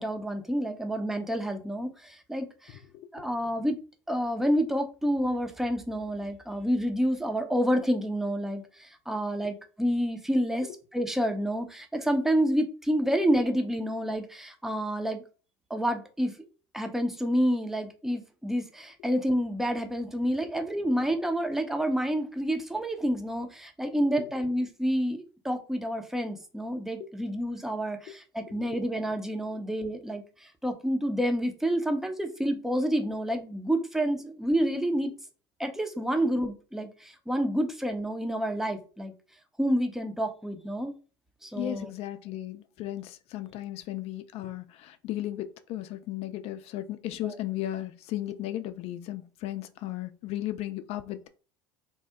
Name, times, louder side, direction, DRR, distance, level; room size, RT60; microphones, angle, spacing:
voice 1, 0.0-2.8 3.1-3.8 4.1-15.2 15.7-16.3 16.7-35.1 35.6-39.1 39.6-40.9 41.4-41.9 47.2-47.3, equal, 5° right, 0.6 m, -29 dB
voice 2, 41.5-51.3, left 13 dB, 50° left, 0.4 m, -35 dB
2.7 x 2.0 x 3.5 m
hypercardioid pair, 70°, 14 cm